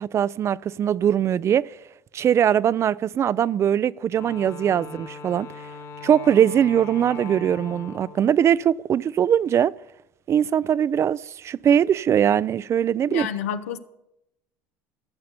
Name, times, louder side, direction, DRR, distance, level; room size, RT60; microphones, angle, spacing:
voice 1, 0.0-1.7 2.1-5.5 6.0-9.7 10.3-13.3, right 9 dB, 40° right, 0.3 m, -21 dB
Wind instrument woodwind instrument, 4.1-8.5, left 5 dB, 55° left, 2.1 m, -40 dB
voice 2, 13.1-13.8, left 8 dB, 90° left, 0.7 m, -29 dB
14.0 x 6.6 x 6.8 m
hypercardioid pair, 80°, 7 cm